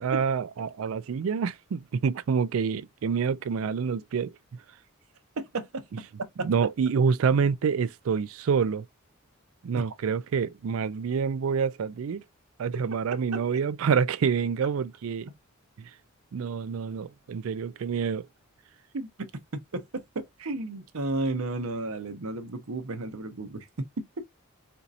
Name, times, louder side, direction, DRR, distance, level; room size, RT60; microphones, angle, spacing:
voice 1, 0.0-4.3 6.4-8.8 9.6-12.2 12.6-15.3 15.8-15.9 16.3-18.3, right 6 dB, 70° right, 0.4 m, -27 dB
voice 2, 5.4-6.5 9.8-9.9 18.9-19.1 19.5-23.7 24.2-24.3, right 2 dB, 85° right, 0.8 m, -33 dB
4.4 x 2.7 x 2.5 m
head